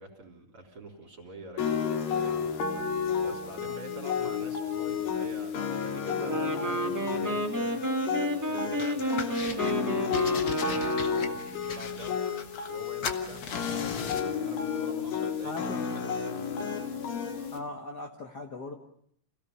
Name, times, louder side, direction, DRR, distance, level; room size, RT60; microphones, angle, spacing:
voice 1, 0.0-7.8 8.3-12.2 12.7-16.6, right 1 dB, 35° right, 1 dB, 4.7 m, -46 dB
sound 1, 1.6-17.6, left 6 dB, 75° left, 3.7 m, -32 dB
Wind instrument woodwind instrument, 6.3-11.4, right 1 dB, 5° right, 1.6 m, -31 dB
sound 2, 8.8-9.7 10.1-12.8 13.0-14.3, left 6 dB, 55° left, 1.3 m, -38 dB
voice 2, 15.4-15.9 17.5-18.8, left 2 dB, 40° left, 2 dB, 1.6 m, -39 dB
28.5 x 17.0 x 7.0 m, 0.66 s
omnidirectional pair, 4.2 m